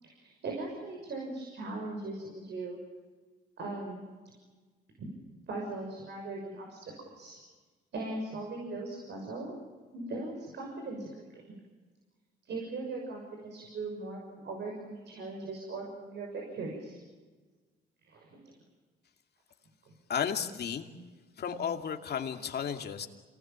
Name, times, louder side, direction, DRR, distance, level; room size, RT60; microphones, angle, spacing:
voice 1, 0.0-2.8 3.6-4.0 5.5-7.4 7.9-9.5 9.9-11.4 12.5-17.0 18.0-18.4, right 2 dB, 60° right, 1 dB, 6.6 m, -39 dB
voice 2, 20.1-20.9 21.4-23.1, left 7 dB, 55° left, 4 dB, 2.5 m, -33 dB
27.5 x 20.0 x 8.9 m, 1.4 s
cardioid pair, 90°, 20 cm